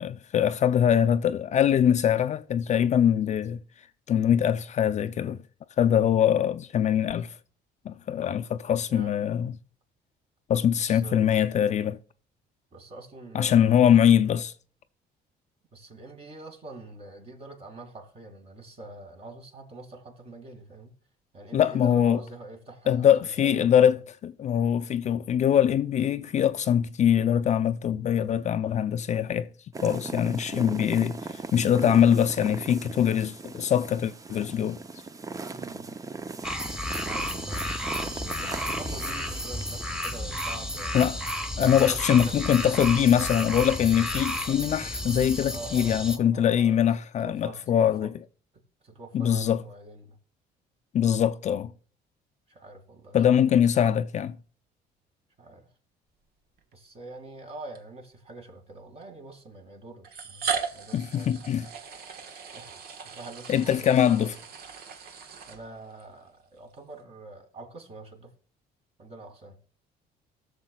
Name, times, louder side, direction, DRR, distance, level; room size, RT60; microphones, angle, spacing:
voice 1, 0.0-3.6 4.1-5.4 5.8-7.4 7.9-9.5 10.5-12.0 13.3-14.5 21.5-22.2 22.9-24.0 24.2-29.5 29.8-34.8 40.9-41.2 41.6-48.1 49.1-49.6 50.9-51.7 53.1-54.4 60.9-61.7 63.5-64.3, left 9 dB, 45° left, 0.5 m, -23 dB
voice 2, 8.9-9.2 10.8-11.3 12.7-13.9 15.7-20.9 21.3-24.0 35.5-35.9 37.0-41.1 41.6-42.4 43.0-43.5 45.5-46.9 47.2-48.1 48.8-50.2 52.5-53.2 53.5-53.7 55.4-55.7 56.7-61.4 62.5-64.4 65.5-68.3 69.0-69.6, right 2 dB, 35° right, 2.3 m, -45 dB
sound 1, 29.7-39.8, right 4 dB, 20° right, 0.6 m, -39 dB
sound 2, 36.4-46.2, equal, 5° right, 1.2 m, -32 dB
sound 3, 56.6-56.7 57.8-57.9 59.0-59.1 60.0-66.0, right 6 dB, 65° right, 1.3 m, -37 dB
19.5 x 6.8 x 2.3 m
cardioid pair, 110°, 17 cm